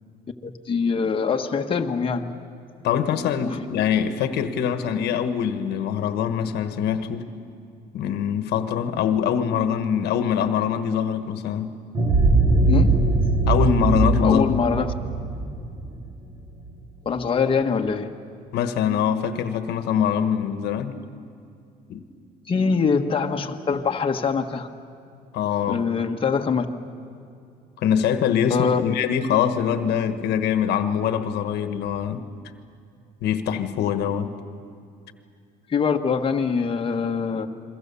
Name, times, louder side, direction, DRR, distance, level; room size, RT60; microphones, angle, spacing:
voice 1, 0.4-2.4 3.4-3.6 12.7-13.0 14.2-14.9 17.0-18.1 22.5-24.7 25.7-26.7 28.5-28.8 35.7-37.5, left 5 dB, 30° left, 3 dB, 1.4 m, -23 dB
voice 2, 2.8-7.3 7.9-11.7 13.5-14.6 18.5-21.0 21.9-22.0 25.3-25.8 27.8-32.2 33.2-34.3, left 8 dB, 80° left, 9 dB, 1.4 m, -23 dB
sound 1, 11.9-16.7, right 2 dB, 30° right, 2.6 m, -21 dB
29.0 x 23.0 x 7.0 m, 2.4 s
cardioid pair, 110°, 17 cm